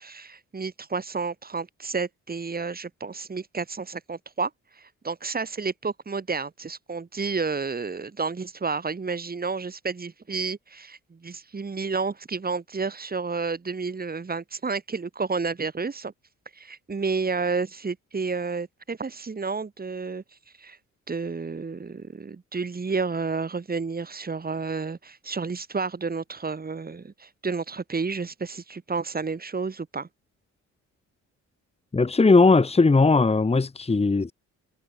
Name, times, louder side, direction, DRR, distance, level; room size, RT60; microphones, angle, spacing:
voice 1, 0.0-16.1 16.5-20.2 20.6-20.8 21.1-30.1, right 4 dB, 30° right, 7.7 m, -31 dB
voice 2, 31.9-34.3, left 3 dB, 20° left, 1.9 m, -18 dB
cardioid pair, 90°, 30 cm